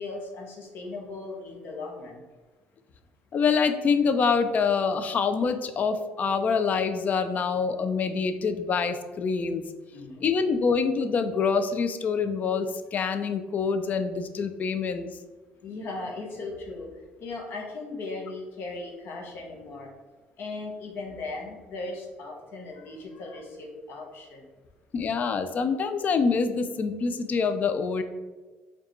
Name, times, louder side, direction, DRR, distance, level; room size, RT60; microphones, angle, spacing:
voice 1, 0.0-2.2 9.9-10.3 15.6-16.9 17.2-19.9 20.4-24.5, left 3 dB, 60° left, 0 dB, 0.7 m, -37 dB
voice 2, 3.3-9.6 10.2-15.1 24.9-28.0, left 5 dB, 40° left, 9 dB, 0.3 m, -26 dB
4.7 x 2.3 x 3.0 m, 1.3 s
cardioid pair, 105°, 4 cm